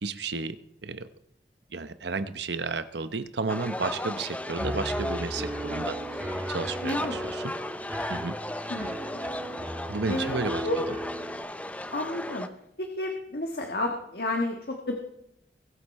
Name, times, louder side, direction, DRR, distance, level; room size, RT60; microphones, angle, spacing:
voice 1, 0.0-1.1 1.7-7.5 8.1-8.3 9.9-10.7, right 4 dB, 75° right, 12 dB, 0.9 m, -32 dB
sound 1, 3.5-12.5, left 1 dB, 10° left, 0.5 m, -36 dB
Piano, 4.6-11.4, right 1 dB, 10° right, 1.6 m, -36 dB
voice 2, 6.8-7.1 8.7-9.0 10.1-10.8 11.9-12.5 12.8-14.9, left 1 dB, 60° left, 2 dB, 1.5 m, -31 dB
21.5 x 8.3 x 4.3 m, 0.78 s
head